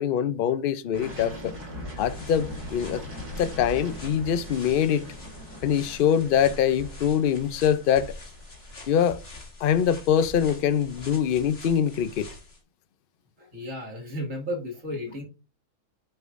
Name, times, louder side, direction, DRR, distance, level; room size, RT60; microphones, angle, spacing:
voice 1, 0.0-1.5 2.0-3.0 3.4-5.1 5.6-8.1 8.9-9.2 9.6-12.3, left 9 dB, 70° left, 0.5 m, -24 dB
sound 1, 0.9-10.7, equal, 70° right, 3.9 m, -41 dB
sound 2, 2.0-12.6, left 2 dB, 40° left, 1.7 m, -45 dB
voice 2, 13.4-15.2, left 1 dB, 55° right, 2.8 m, -33 dB
8.9 x 5.6 x 2.5 m
omnidirectional pair, 1.7 m